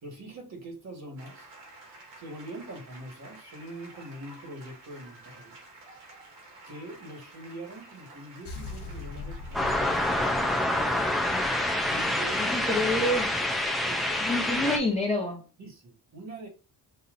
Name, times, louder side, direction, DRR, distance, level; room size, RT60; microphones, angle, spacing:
voice 1, 0.0-1.5 2.2-5.5 6.4-12.5 13.8-14.1 15.6-16.5, right 1 dB, 40° right, 1.6 m, -43 dB
sound 1, 1.2-11.6, right 2 dB, 85° right, 2.1 m, -51 dB
sound 2, 8.4-12.5, left 3 dB, 70° left, 1.2 m, -42 dB
sound 3, 9.5-14.8, left 1 dB, ahead, 0.5 m, -27 dB
voice 2, 12.4-13.3 14.2-15.4, left 1 dB, 15° left, 1.0 m, -27 dB
5.6 x 2.7 x 2.6 m
cardioid pair, 140°, 41 cm